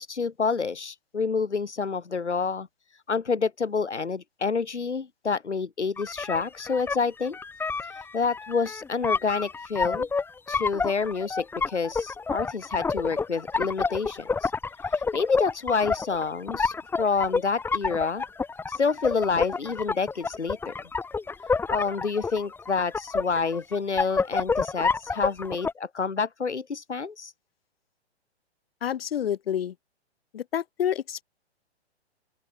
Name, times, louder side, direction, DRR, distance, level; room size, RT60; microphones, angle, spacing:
voice 1, 0.0-7.4 7.8-10.1 10.5-14.5 14.9-18.2 18.7-20.7 21.4-27.3, left 5 dB, 85° left, 2.1 m, -28 dB
sound 1, 6.0-25.7, left 4 dB, 5° left, 1.1 m, -29 dB
voice 2, 28.8-29.7 30.3-31.2, left 9 dB, 60° left, 7.3 m, -28 dB
open air
figure-of-eight pair, 125°, 34 cm